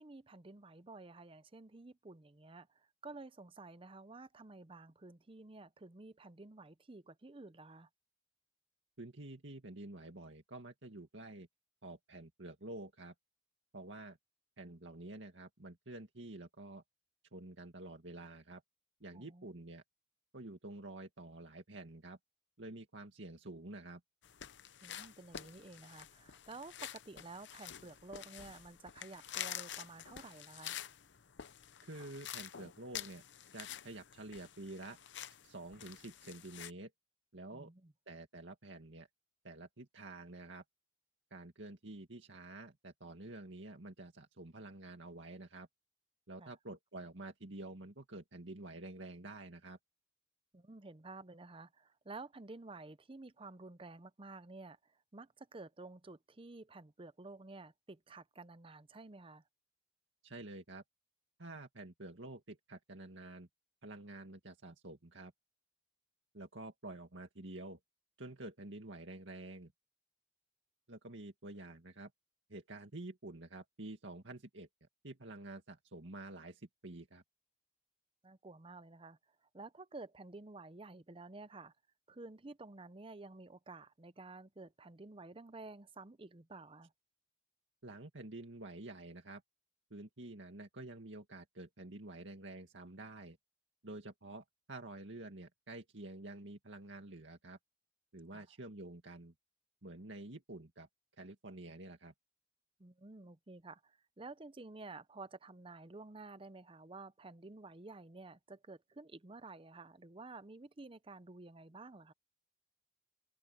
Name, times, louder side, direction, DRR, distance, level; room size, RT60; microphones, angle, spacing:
voice 1, 0.0-2.7 3.0-7.9 19.1-19.5 24.8-30.8 37.5-37.9 46.4-46.5 50.5-54.8 55.1-59.4 78.2-79.2 79.5-81.7 82.1-86.9 98.3-98.4 102.8-112.1, right 3 dB, 30° right, 0.7 m, -52 dB
voice 2, 9.0-11.5 11.8-13.1 13.7-14.2 14.6-16.8 17.3-18.6 19.0-19.8 20.3-22.2 22.6-24.0 31.8-33.2 33.5-35.0 35.4-36.9 37.3-37.7 38.1-39.1 39.4-40.6 41.3-45.7 46.3-49.8 60.2-60.8 61.4-63.5 63.8-65.3 66.3-67.8 68.2-69.7 70.9-72.1 72.5-74.7 75.0-77.2 87.8-89.4 89.9-93.4 93.8-97.6 98.1-99.3 99.8-100.9 101.2-102.1, right 2 dB, 85° right, 2.1 m, -49 dB
sound 1, 24.2-36.7, left 10 dB, 70° left, 0.7 m, -48 dB
head